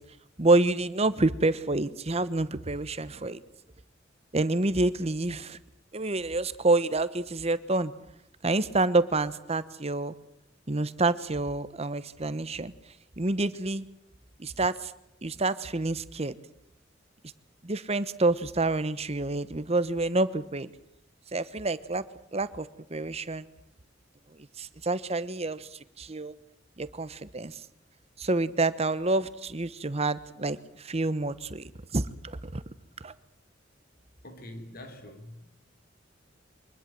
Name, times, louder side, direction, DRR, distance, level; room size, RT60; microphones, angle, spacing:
voice 1, 0.4-3.4 4.3-5.6 5.9-7.9 8.4-10.1 10.7-12.7 13.2-13.8 14.4-14.9 15.2-16.4 17.6-20.7 21.3-22.0 22.3-23.5 24.6-25.7 26.0-26.3 26.8-27.6 28.2-32.6 33.0-33.1, right 2 dB, 35° right, 1.1 m, -28 dB
voice 2, 34.2-35.4, left 1 dB, 50° left, 3.5 m, -44 dB
24.5 x 20.5 x 7.7 m
head